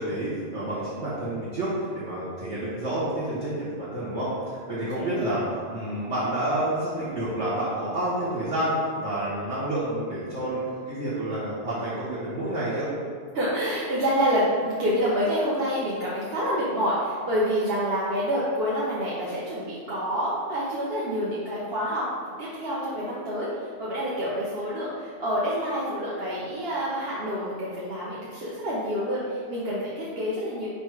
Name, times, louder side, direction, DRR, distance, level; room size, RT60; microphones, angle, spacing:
voice 1, 0.0-5.4 5.7-12.9, right 1 dB, 80° right, -12 dB, 1.7 m, -29 dB
voice 2, 4.9-5.4 13.3-22.0 22.4-23.5 23.8-30.7, equal, 60° right, -7 dB, 1.1 m, -27 dB
5.2 x 4.0 x 4.6 m, 2.1 s
omnidirectional pair, 1.2 m